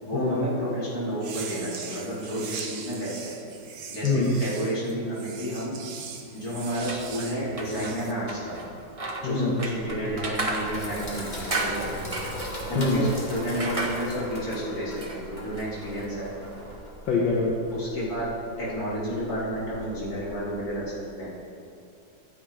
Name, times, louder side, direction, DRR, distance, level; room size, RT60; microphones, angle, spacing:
voice 1, 0.0-3.3 3.9-5.8 6.3-8.6 9.2-12.1 12.7-16.3 17.7-18.3 18.6-21.3, equal, 50° left, -9 dB, 4.1 m, -31 dB
sound 1, 1.1-8.1, right 6 dB, 60° right, 1.4 m, -40 dB
voice 2, 4.0-4.3 9.2-9.5 12.8-13.0 17.1-17.5, left 4 dB, 80° left, -4 dB, 2.0 m, -24 dB
sound 2, 6.8-16.8, right 2 dB, 30° right, 0.7 m, -36 dB
Sink (filling or washing), 10.2-20.8, equal, 25° left, 2.0 m, -39 dB
12.5 x 9.1 x 5.1 m, 2.5 s
omnidirectional pair, 2.1 m